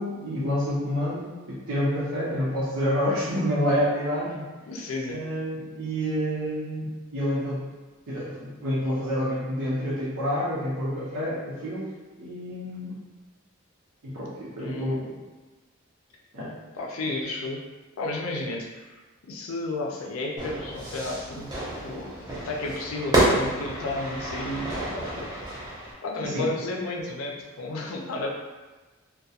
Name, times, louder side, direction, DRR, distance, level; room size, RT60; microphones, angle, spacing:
voice 1, 0.0-4.4 5.1-7.6 8.1-11.9 12.2-13.0 14.0-15.2 16.3-16.5 26.2-26.5, equal, 85° right, -10 dB, 0.7 m, -28 dB
voice 2, 4.7-5.3 14.6-15.1 16.8-17.6 18.0-19.0 19.3-21.5 21.8-22.1 22.4-25.3 26.0-28.3, left 2 dB, 80° left, 0 dB, 0.4 m, -32 dB
Fire / Fireworks, 20.4-25.9, right 1 dB, 20° right, 0.6 m, -29 dB
2.3 x 2.2 x 2.7 m, 1.2 s
head